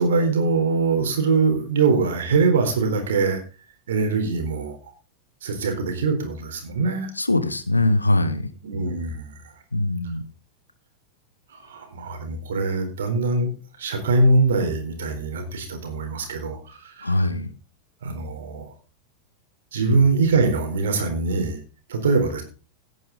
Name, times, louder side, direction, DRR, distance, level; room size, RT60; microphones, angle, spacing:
voice 1, 0.0-3.4 3.9-4.9 5.4-7.1 8.6-9.5 11.5-13.5 13.8-17.2 18.0-18.7 19.7-21.6 21.9-22.4, right 3 dB, 60° right, 5 dB, 4.0 m, -23 dB
voice 2, 7.2-8.5 9.7-10.2 17.0-17.5 19.8-20.0, left 2 dB, 80° left, 11 dB, 1.6 m, -22 dB
17.0 x 9.3 x 4.0 m, 0.34 s
figure-of-eight pair, 90°, 0 cm